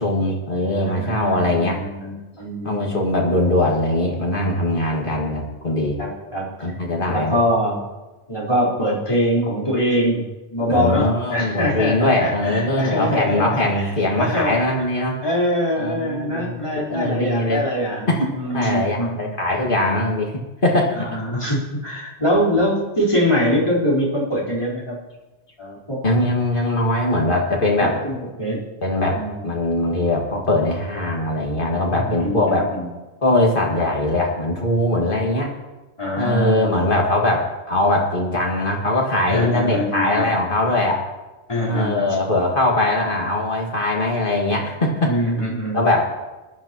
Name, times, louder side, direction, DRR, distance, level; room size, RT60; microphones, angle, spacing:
voice 1, 0.0-1.8 2.6-6.0 6.6-7.4 10.7-15.2 15.8-17.6 18.1-20.3 20.6-21.2 26.0-28.0 28.8-32.7 33.2-35.5 36.2-41.0 41.7-45.1 45.7-46.2, left 1 dB, 45° left, 0 dB, 2.2 m, -21 dB
voice 2, 0.8-3.0 6.0-6.5 7.1-7.8 8.3-13.8 14.2-14.6 15.2-18.1 18.3-19.4 21.0-25.0 25.6-26.0 27.8-28.6 29.1-29.3 32.0-32.9 36.0-36.9 39.3-40.3 41.5-42.2 45.0-45.8, equal, 25° left, -8 dB, 4.1 m, -23 dB
20.5 x 11.0 x 3.0 m, 1.1 s
omnidirectional pair, 1.3 m